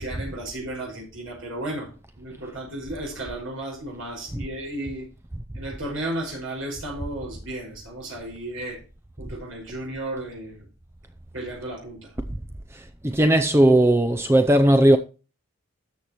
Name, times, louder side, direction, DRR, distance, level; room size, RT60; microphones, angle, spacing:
voice 1, 0.0-5.1 5.5-8.8 9.2-10.7 11.3-12.2, right 1 dB, 75° right, 5.4 m, -34 dB
voice 2, 12.7-15.0, right 1 dB, 10° right, 0.5 m, -17 dB
13.5 x 7.1 x 3.1 m
head